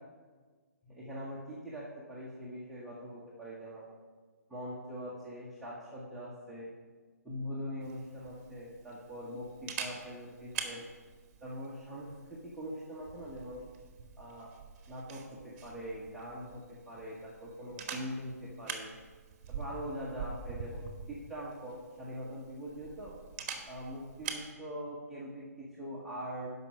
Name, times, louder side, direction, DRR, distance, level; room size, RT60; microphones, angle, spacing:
voice 1, 0.8-3.9 4.5-6.7 7.2-10.9 11.4-13.6 14.2-14.5 14.9-18.9 19.5-23.1 23.7-26.5, equal, ahead, -9 dB, 1.2 m, -42 dB
Camera, 7.8-24.5, right 6 dB, 35° right, 1.3 m, -45 dB
12.5 x 5.4 x 4.7 m, 1.4 s
hypercardioid pair, 145°, 9 cm